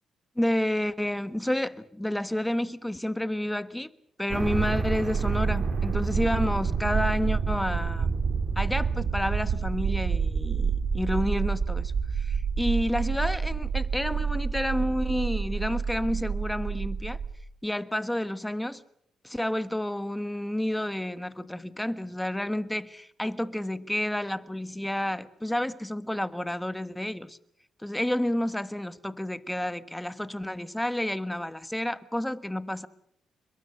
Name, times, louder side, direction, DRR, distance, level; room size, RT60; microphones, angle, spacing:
voice 1, 0.4-3.9 4.2-8.1 8.5-17.2 17.6-18.8 19.2-27.4 27.8-32.9, left 1 dB, 5° left, 1.3 m, -30 dB
sound 1, 4.3-17.3, right 5 dB, 55° right, 4.0 m, -28 dB
29.5 x 22.0 x 6.8 m
cardioid pair, 85°, 0 cm